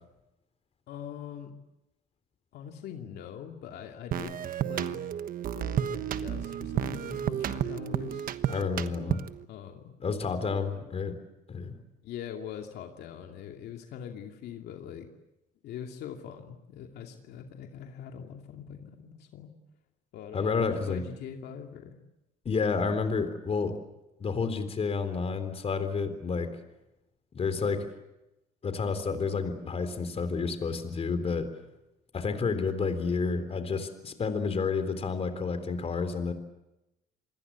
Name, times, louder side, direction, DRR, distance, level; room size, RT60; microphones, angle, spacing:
voice 1, 0.9-1.5 2.5-4.4 4.7-5.0 5.5-8.3 9.5-9.9 10.5-10.9 12.0-15.1 15.6-19.5 20.1-22.0, left 8 dB, 75° left, 3 dB, 2.6 m, -42 dB
sound 1, 4.1-9.4, right 10 dB, 55° right, 1.2 m, -32 dB
voice 2, 8.5-9.2 10.0-11.2 11.5-11.7 20.3-21.0 22.5-23.8 24.2-26.5 27.3-27.9 28.6-31.5 32.1-36.3, left 5 dB, 35° left, 10 dB, 3.8 m, -30 dB
27.5 x 21.0 x 8.6 m, 0.93 s
cardioid pair, 110°, 17 cm